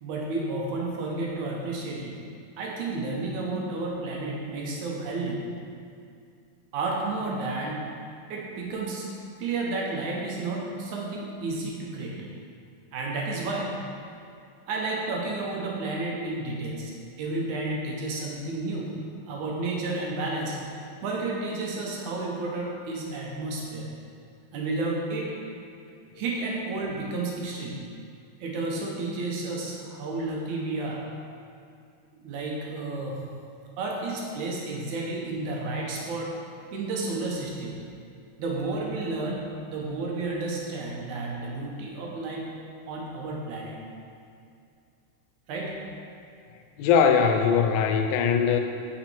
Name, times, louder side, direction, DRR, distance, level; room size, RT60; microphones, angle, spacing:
voice 1, 0.0-2.2 2.6-5.4 6.7-7.8 8.3-9.1 9.4-12.2 12.9-13.7 14.7-16.9 17.2-18.9 19.3-23.9 24.5-25.3 26.2-27.8 28.4-31.0 32.2-33.2 33.8-36.3 36.7-37.8 38.4-42.5 42.9-43.8 45.5-45.7, right 2 dB, 75° right, -2 dB, 2.5 m, -31 dB
voice 2, 46.8-48.6, left 6 dB, 85° left, 5 dB, 2.0 m, -21 dB
7.0 x 5.9 x 4.4 m, 2.4 s
omnidirectional pair, 3.5 m